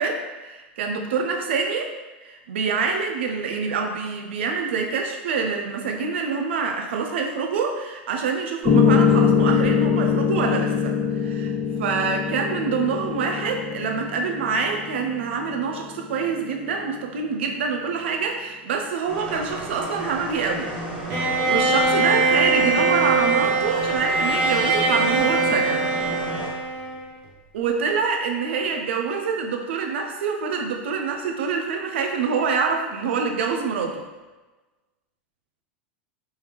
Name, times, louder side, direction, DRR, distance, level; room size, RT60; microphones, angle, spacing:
voice 1, 0.0-1.9 2.2-11.5 11.8-20.7 21.1-25.8 27.5-34.0, right 5 dB, 70° right, 3 dB, 0.6 m, -26 dB
Piano, 8.6-16.7, left 6 dB, 25° left, 0.6 m, -23 dB
sound 1, 19.1-26.5, right 1 dB, 10° right, 1.4 m, -32 dB
Bowed string instrument, 21.1-27.2, right 3 dB, 45° right, 1.1 m, -22 dB
3.5 x 3.1 x 3.0 m, 1.2 s
hypercardioid pair, 95°, 6 cm